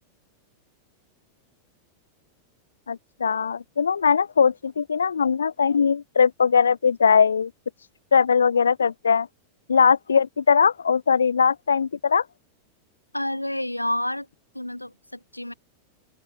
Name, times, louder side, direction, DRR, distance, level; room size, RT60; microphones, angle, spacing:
voice 1, 2.9-7.5 8.1-9.3 9.7-12.2, left 6 dB, 70° left, 0.4 m, -20 dB
voice 2, 13.1-14.3 14.5-15.5, left 1 dB, 85° left, 3.9 m, -29 dB
open air
figure-of-eight pair, 90°, 0 cm